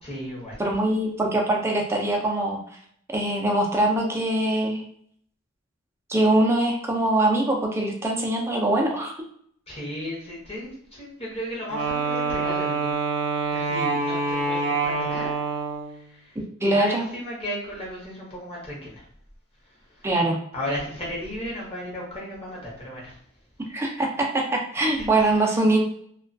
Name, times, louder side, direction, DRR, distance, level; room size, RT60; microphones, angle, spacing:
voice 1, 0.0-0.6 9.7-12.9 13.5-15.4 15.9-19.1 19.7-20.1 20.5-23.2 25.0-25.8, equal, 25° left, -5 dB, 0.8 m, -35 dB
voice 2, 0.6-2.6 3.1-4.8 6.1-9.1 16.6-17.0 20.0-20.4 23.7-25.8, right 1 dB, 10° right, 0 dB, 0.3 m, -23 dB
Wind instrument woodwind instrument, 11.7-16.0, right 4 dB, 80° right, 0.6 m, -26 dB
2.3 x 2.2 x 2.5 m, 0.65 s
head